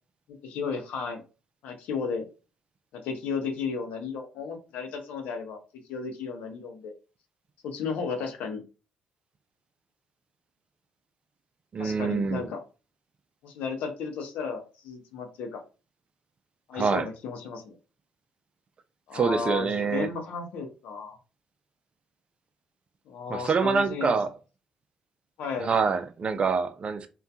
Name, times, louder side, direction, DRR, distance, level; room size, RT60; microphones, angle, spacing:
voice 1, 0.4-1.2 1.6-2.2 2.9-5.6 5.9-6.9 7.6-8.6 11.8-12.6 13.4-15.6 16.7-17.8 19.1-21.2 23.1-24.2 25.4-25.7, left 5 dB, 75° left, 0.6 m, -34 dB
voice 2, 11.7-12.5 16.7-17.1 19.1-20.1 23.3-24.3 25.6-27.1, right 5 dB, 45° right, 0.4 m, -26 dB
2.5 x 2.2 x 2.2 m
hypercardioid pair, 55°, 3 cm